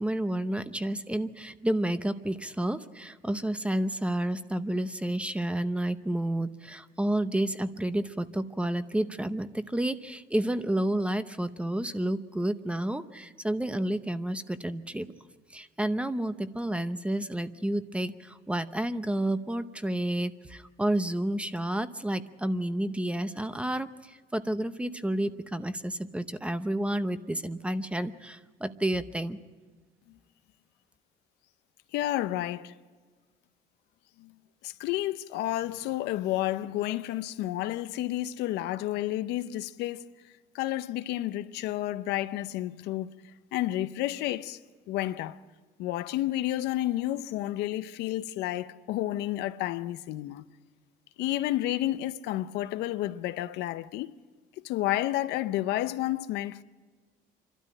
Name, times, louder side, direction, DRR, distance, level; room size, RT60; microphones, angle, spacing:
voice 1, 0.0-15.1 15.5-29.4, right 1 dB, 5° right, 0.8 m, -30 dB
voice 2, 31.9-32.7 34.2-34.3 34.6-40.1 40.5-43.1 43.5-44.6 44.9-45.4 45.8-50.4 51.2-54.1 54.6-56.6, left 14 dB, 85° left, 0.7 m, -31 dB
27.0 x 12.5 x 8.9 m
cardioid pair, 110°, 17 cm